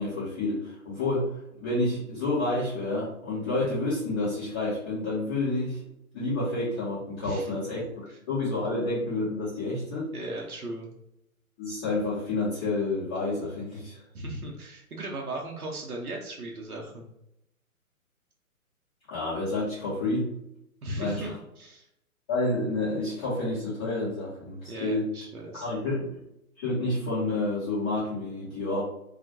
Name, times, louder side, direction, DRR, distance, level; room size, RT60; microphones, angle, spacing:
voice 1, 0.0-1.3 1.6-5.8 6.1-10.1 11.6-14.0 19.1-20.3 21.0-21.3 22.3-25.1 25.6-26.2 26.6-28.8, left 2 dB, 15° left, -13 dB, 0.6 m, -29 dB
voice 2, 7.2-7.5 8.1-8.2 10.1-10.9 14.1-17.1 20.8-21.3 21.6-21.9 24.7-25.7, right 2 dB, 85° right, -1 dB, 0.7 m, -37 dB
2.2 x 2.1 x 2.8 m, 0.80 s
figure-of-eight pair, 130°, 44 cm